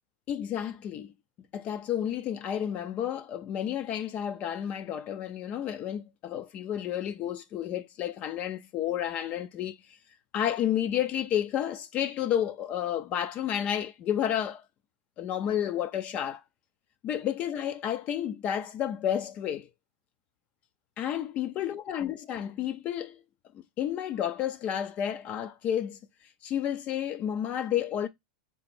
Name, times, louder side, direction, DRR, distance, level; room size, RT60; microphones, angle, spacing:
voice 1, 0.3-1.1 1.5-9.8 10.3-14.6 15.2-16.4 17.0-19.7 21.0-23.2 23.5-26.0 26.4-28.1, left 10 dB, 30° left, 0.4 m, -31 dB
3.3 x 3.1 x 4.1 m
supercardioid pair, 145°, 5 cm